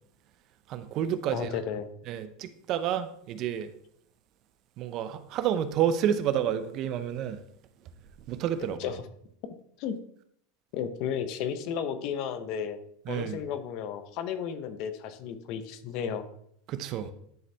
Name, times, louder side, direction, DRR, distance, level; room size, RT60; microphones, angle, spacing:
voice 1, 0.7-1.5 2.1-3.7 4.8-7.4 8.3-8.9 13.1-13.4 16.7-17.1, right 9 dB, 45° right, 0.6 m, -29 dB
voice 2, 1.3-1.9 8.8-9.0 9.8-10.0 10.7-12.8 13.1-16.2, left 8 dB, 55° left, 0.7 m, -33 dB
10.5 x 4.1 x 3.4 m
supercardioid pair, 125°, 0 cm